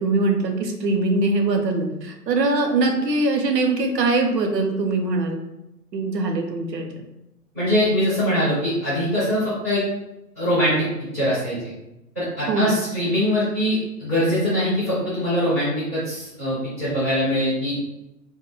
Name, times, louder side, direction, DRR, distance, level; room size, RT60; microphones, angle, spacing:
voice 1, 0.0-5.4 5.9-6.9 12.5-12.7, right 3 dB, 80° right, 3 dB, 0.7 m, -22 dB
voice 2, 7.5-9.8 10.4-10.9 11.1-11.7 12.1-17.8, equal, 10° right, -13 dB, 0.5 m, -22 dB
2.2 x 2.1 x 3.0 m, 0.92 s
figure-of-eight pair, 135°, 49 cm